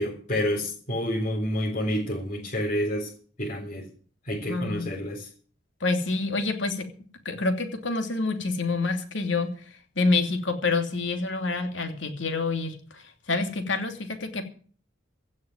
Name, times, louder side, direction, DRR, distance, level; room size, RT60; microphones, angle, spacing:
voice 1, 0.0-3.1 3.4-3.9 4.2-5.3, equal, 40° left, 3.8 m, -29 dB
voice 2, 4.5-4.9 5.8-6.9 7.2-9.5 10.0-14.4, left 3 dB, 70° left, 2.8 m, -27 dB
16.5 x 6.4 x 9.6 m
head